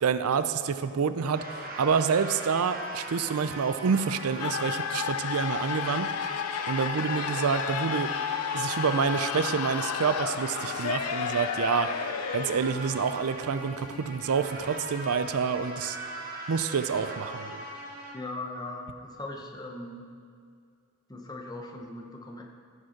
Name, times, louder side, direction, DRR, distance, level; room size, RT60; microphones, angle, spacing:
voice 1, 0.0-6.1 6.7-8.1 8.5-12.0 12.3-16.0 16.5-17.6, right 6 dB, 80° right, 11 dB, 0.5 m, -28 dB
sound 1, 1.3-18.1, right 1 dB, 40° right, 1.2 m, -40 dB
sound 2, 4.4-15.3, left 8 dB, 80° left, 0.4 m, -33 dB
voice 2, 18.1-20.1 21.1-22.4, left 2 dB, 15° left, 0 dB, 0.9 m, -39 dB
15.0 x 5.4 x 5.8 m, 2.2 s
head